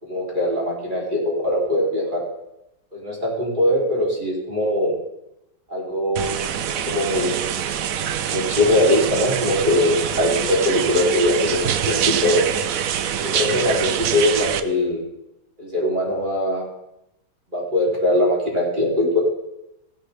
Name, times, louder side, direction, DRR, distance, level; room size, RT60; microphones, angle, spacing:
voice 1, 0.0-2.2 2.9-4.9 5.7-6.5 6.9-7.6 8.3-12.5 13.2-15.0 15.6-16.6 17.5-19.2, left 1 dB, 20° right, -4 dB, 3.4 m, -21 dB
sound 1, 6.2-14.6, right 9 dB, 80° right, 0.7 m, -25 dB
16.0 x 11.0 x 3.4 m, 0.87 s
omnidirectional pair, 2.3 m